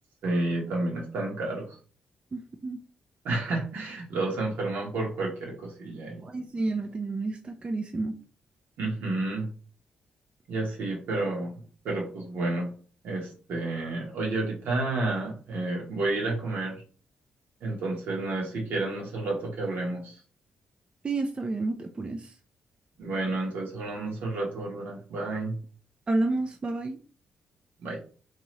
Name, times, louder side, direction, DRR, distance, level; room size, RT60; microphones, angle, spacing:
voice 1, 0.2-1.7 3.2-6.2 8.8-9.5 10.5-11.5 11.8-12.7 13.0-16.8 17.6-20.1 23.0-25.5 27.8-28.0, right 2 dB, 80° right, -1 dB, 1.2 m, -30 dB
voice 2, 2.3-2.8 6.2-8.2 21.0-22.3 26.1-27.0, right 2 dB, 35° right, 4 dB, 0.4 m, -30 dB
2.7 x 2.4 x 3.1 m, 0.40 s
cardioid pair, 65°, 3 cm